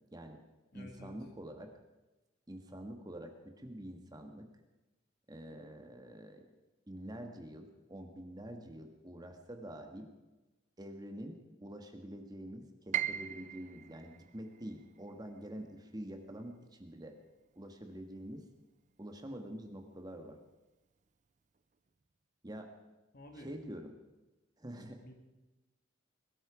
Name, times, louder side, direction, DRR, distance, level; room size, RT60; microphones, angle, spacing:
voice 1, 0.1-0.4 0.7-1.7 2.5-4.5 5.3-6.4 6.9-10.1 10.8-17.1 17.5-18.4 19.0-20.4 22.4-22.7 23.3-23.9 24.6-25.0, right 1 dB, 20° right, 5 dB, 1.5 m, -46 dB
voice 2, 0.7-1.1 23.1-23.5 25.0-25.1, left 1 dB, 50° left, 3 dB, 2.7 m, -51 dB
Piano, 12.9-18.9 19.2-20.3 20.8-20.9 21.6-21.9, right 10 dB, 40° right, 0.5 m, -42 dB
21.5 x 13.5 x 5.0 m, 1.1 s
head